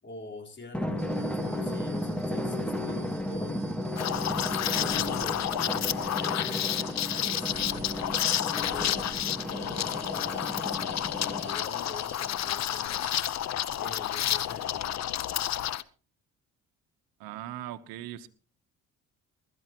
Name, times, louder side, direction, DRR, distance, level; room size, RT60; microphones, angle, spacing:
voice 1, 0.0-3.6 4.0-5.6 6.0-8.1 8.5-13.2 13.8-15.0, left 3 dB, 30° left, 1 dB, 4.2 m, -45 dB
Drum, 0.7-11.7, left 1 dB, 5° left, 2.2 m, -34 dB
sound 1, 1.0-12.9, right 7 dB, 55° right, 4.9 m, -51 dB
Liquid, 4.0-15.8, left 11 dB, 50° left, 0.8 m, -30 dB
voice 2, 17.2-18.3, right 13 dB, 90° right, 12 dB, 1.1 m, -39 dB
22.0 x 13.5 x 3.0 m, 0.36 s
cardioid pair, 90°, 34 cm